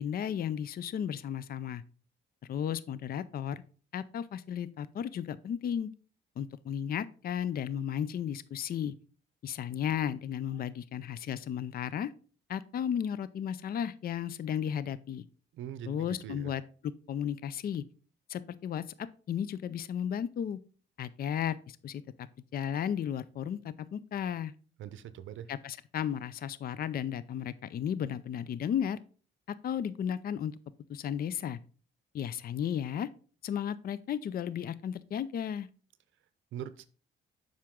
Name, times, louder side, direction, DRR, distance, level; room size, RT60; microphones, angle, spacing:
voice 1, 0.0-1.8 2.5-3.6 3.9-5.9 6.4-8.9 9.4-12.1 12.5-15.2 15.9-17.8 18.3-20.6 21.0-22.3 22.5-24.5 25.5-29.0 29.5-30.6 30.9-31.6 32.1-33.1 33.4-35.7, left 9 dB, 50° left, 16 dB, 0.5 m, -34 dB
voice 2, 15.5-16.5 24.8-25.5 36.5-36.9, right 10 dB, 75° right, 13 dB, 0.6 m, -42 dB
7.6 x 5.8 x 3.6 m, 0.39 s
cardioid pair, 90°, 20 cm